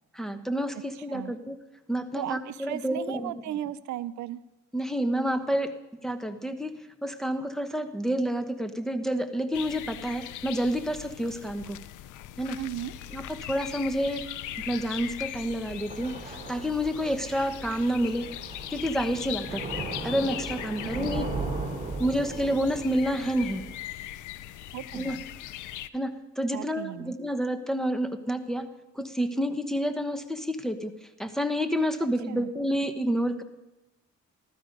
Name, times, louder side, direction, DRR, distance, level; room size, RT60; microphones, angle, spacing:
voice 1, 0.1-1.6 1.9-3.3 4.7-5.7 6.0-6.7 7.0-11.8 12.4-12.6 13.1-14.3 14.7-18.3 18.7-19.6 20.0-21.3 22.0-23.6 24.9-25.2 25.9-28.7 28.9-30.9 31.2-33.4, equal, ahead, 6 dB, 1.0 m, -29 dB
voice 2, 0.9-1.3 2.1-4.4 12.6-12.9 21.0-21.1 24.7-25.2 26.5-27.1 32.3-32.5, right 12 dB, 70° right, 15 dB, 0.6 m, -36 dB
sound 1, 9.5-25.9, left 13 dB, 85° left, 0.6 m, -40 dB
Thunder / Rain, 12.8-23.7, right 3 dB, 20° right, 4.0 m, -38 dB
15.0 x 13.0 x 5.2 m, 1.0 s
cardioid pair, 90°, 30 cm